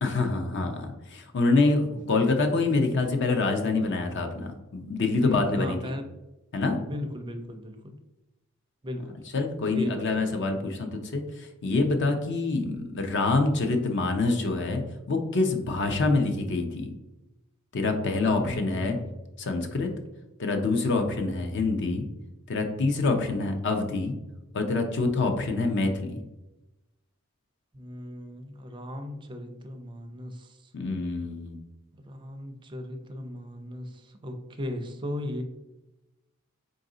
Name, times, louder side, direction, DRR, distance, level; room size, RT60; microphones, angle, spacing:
voice 1, 0.0-5.8 6.5-6.8 9.3-14.8 15.1-16.9 17.7-19.0 19.4-19.9 20.4-22.0 22.5-24.1 24.5-26.2 30.7-31.6, left 3 dB, 55° left, 5 dB, 0.6 m, -26 dB
voice 2, 5.2-6.0 6.8-7.9 8.8-9.2 9.7-10.1 18.2-19.1 27.7-30.7 31.9-35.4, left 1 dB, 20° right, 5 dB, 0.4 m, -37 dB
3.9 x 2.6 x 3.7 m, 0.98 s
head